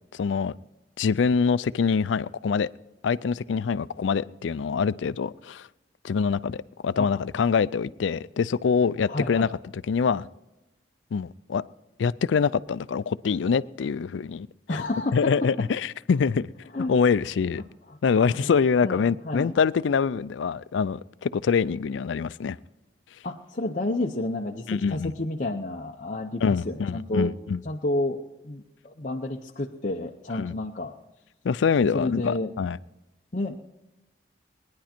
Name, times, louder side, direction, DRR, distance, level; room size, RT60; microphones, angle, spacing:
voice 1, 0.1-0.5 1.0-2.7 3.0-5.7 6.0-9.5 9.7-10.3 11.1-11.6 12.0-14.8 15.1-16.5 16.9-17.6 18.0-22.6 24.7-25.1 26.4-27.6 30.3-30.5 31.4-32.8, left 6 dB, 90° left, 0.4 m, -25 dB
voice 2, 9.1-9.5 14.7-15.3 16.7-16.9 17.9-18.0 18.3-19.5 23.2-27.3 27.6-30.9 31.9-32.5 33.3-33.6, left 2 dB, 45° left, 0.7 m, -30 dB
19.5 x 10.5 x 4.4 m
head